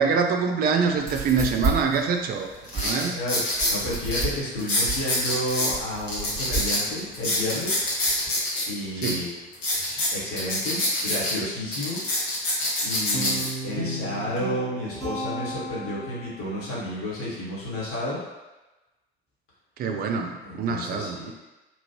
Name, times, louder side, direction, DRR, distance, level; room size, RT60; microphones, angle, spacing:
voice 1, 0.0-2.5 2.7-3.2 9.0-9.2 19.8-21.3, right 5 dB, 30° right, 3 dB, 0.4 m, -25 dB
sound 1, 0.9-8.3, right 4 dB, 10° right, 0.8 m, -32 dB
sound 2, 2.0-2.1 2.6-3.8 4.1-4.2 4.6-5.7 6.1-8.6 9.0-9.1 9.5-11.3 11.7-13.5 14.1-14.4, left 1 dB, 70° left, 1.1 m, -26 dB
voice 2, 2.7-3.4 3.7-7.8 8.7-9.3 9.8-12.0 12.8-18.2 20.4-21.3, left 1 dB, 40° left, -8 dB, 1.4 m, -31 dB
Guitar, 13.1-16.4, equal, 20° left, 1.0 m, -34 dB
3.0 x 2.5 x 2.9 m, 1.1 s
figure-of-eight pair, 60°, 33 cm